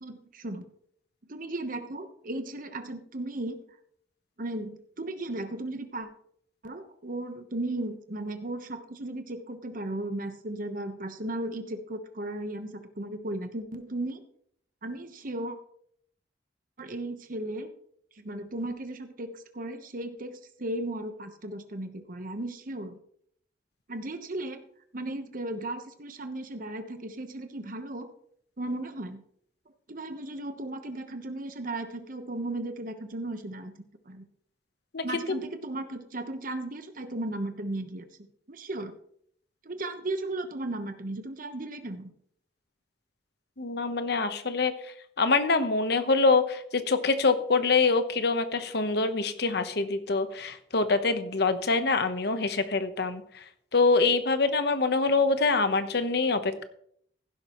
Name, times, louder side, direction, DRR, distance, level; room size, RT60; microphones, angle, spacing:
voice 1, 0.0-0.7 1.2-3.6 4.4-6.1 6.6-14.2 14.8-15.6 16.8-17.7 18.1-23.0 23.9-24.6 24.9-28.1 28.6-29.2 29.9-33.7 34.0-34.2 35.0-38.1 38.5-38.9 39.6-42.1, right 1 dB, 50° right, 8 dB, 1.1 m, -35 dB
voice 2, 43.6-44.7 45.2-53.4 53.7-56.6, left 3 dB, 65° left, 10 dB, 1.1 m, -25 dB
15.5 x 11.5 x 3.1 m, 0.66 s
head